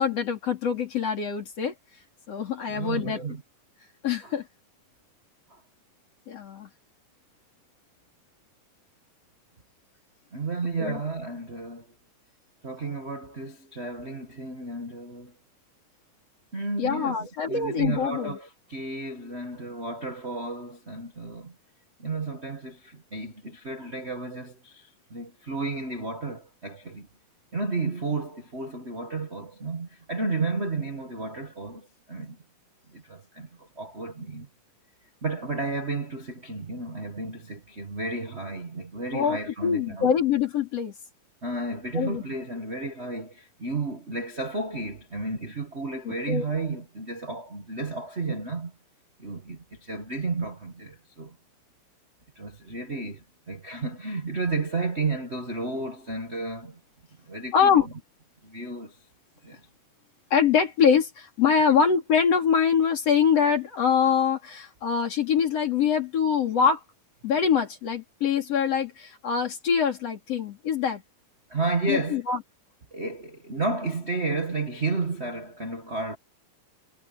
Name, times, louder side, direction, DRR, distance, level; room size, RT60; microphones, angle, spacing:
voice 1, 0.0-1.7 2.3-3.2 4.0-4.5 6.3-6.7 10.8-11.0 16.8-18.4 39.1-40.9 41.9-42.2 46.1-46.5 57.5-57.9 60.3-66.8 67.2-71.0 71.9-72.4, left 7 dB, 45° left, 4.0 m, -24 dB
voice 2, 2.7-3.4 4.2-4.3 5.5-5.6 10.3-11.9 12.6-15.3 16.5-21.5 22.0-27.1 27.5-32.4 32.9-34.5 35.2-40.1 41.4-48.7 49.2-51.4 52.3-56.8 57.3-57.9 58.4-59.0 59.4-59.6 71.5-72.2 72.9-76.2, right 3 dB, 40° right, 0.9 m, -32 dB
omnidirectional pair, 4.1 m